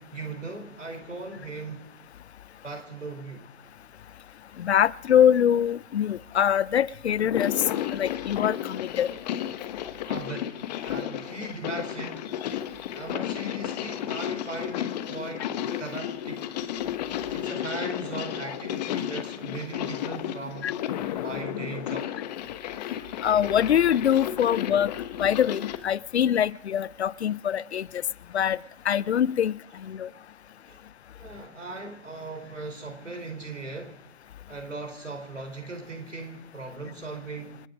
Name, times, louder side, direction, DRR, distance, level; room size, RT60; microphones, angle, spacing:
voice 1, 0.0-1.9 2.6-3.4 10.1-12.3 12.9-16.5 17.3-20.7 21.2-22.2 30.7-30.8 31.2-34.0 34.5-37.6, right 3 dB, 80° right, 4.1 m, -38 dB
voice 2, 4.6-7.5 7.9-9.1 20.6-20.7 23.2-24.9 25.2-27.9 28.3-28.6 28.9-30.1, left 9 dB, 60° left, 0.5 m, -23 dB
sound 1, 7.2-25.8, left 11 dB, 35° left, 1.1 m, -33 dB
28.0 x 9.6 x 5.1 m
figure-of-eight pair, 120°, 37 cm